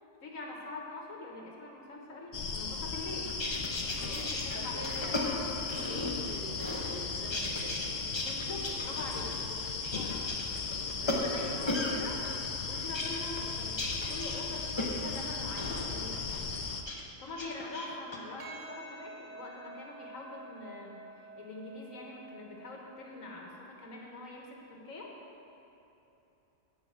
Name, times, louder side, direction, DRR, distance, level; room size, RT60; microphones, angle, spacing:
voice 1, 0.2-3.4 3.7-5.4 8.2-10.2 11.0-12.2 12.7-16.4 17.2-21.0 21.3-25.1, left 2 dB, 75° left, -1 dB, 1.7 m, -43 dB
sound 1, 2.3-16.8, left 5 dB, 50° left, 0.5 m, -37 dB
sound 2, 3.2-6.3 6.6-7.9 8.1-11.9 12.2-15.2 15.6-15.9 16.3-17.0 17.3-18.2, left 2 dB, 25° left, 0.8 m, -36 dB
voice 2, 3.9-5.4 5.8-8.0 11.0-11.7, right 2 dB, 50° right, 0 dB, 1.0 m, -46 dB
Percussion, 18.4-23.0, right 3 dB, 65° right, 1.3 m, -49 dB
8.7 x 5.7 x 7.9 m, 3.0 s
omnidirectional pair, 1.4 m